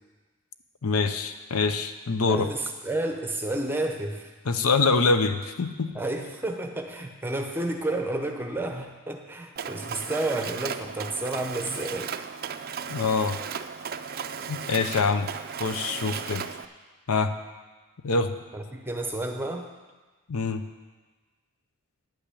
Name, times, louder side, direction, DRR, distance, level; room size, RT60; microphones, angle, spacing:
voice 1, 0.8-2.5 4.5-6.0 12.9-13.4 14.5-15.3 15.6-16.4 17.1-17.3 18.0-18.3 20.3-20.6, left 4 dB, 75° left, 9 dB, 0.6 m, -25 dB
voice 2, 2.2-4.3 5.9-12.1 18.5-19.7, right 2 dB, 10° right, 3 dB, 0.8 m, -31 dB
Mechanisms, 9.6-16.7, right 7 dB, 40° right, 0.4 m, -35 dB
10.5 x 5.9 x 8.3 m, 1.3 s
head